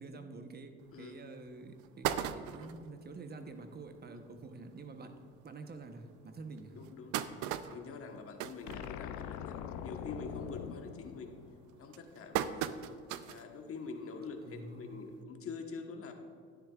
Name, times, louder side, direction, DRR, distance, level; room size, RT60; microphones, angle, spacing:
voice 1, 0.0-5.2 5.4-6.8 14.4-15.0, right 3 dB, 30° right, 7 dB, 1.0 m, -48 dB
sound 1, 0.9-1.0 1.5-1.6 1.8-2.9 3.4-3.5 3.8-3.9 4.2-4.4 5.1-5.2 5.7-5.8 6.6-9.4 9.8-10.1 10.5-10.9 11.5-13.5 13.9-14.0 15.2-15.3, right 11 dB, 70° right, 0.5 m, -37 dB
voice 2, 6.7-7.1 7.7-11.4 11.8-12.8 13.3-16.1, left 4 dB, 45° left, 4 dB, 1.3 m, -45 dB
sound 2, 8.7-12.0, left 9 dB, 70° left, 0.6 m, -43 dB
11.5 x 10.0 x 2.4 m, 2.1 s
supercardioid pair, 75°, 31 cm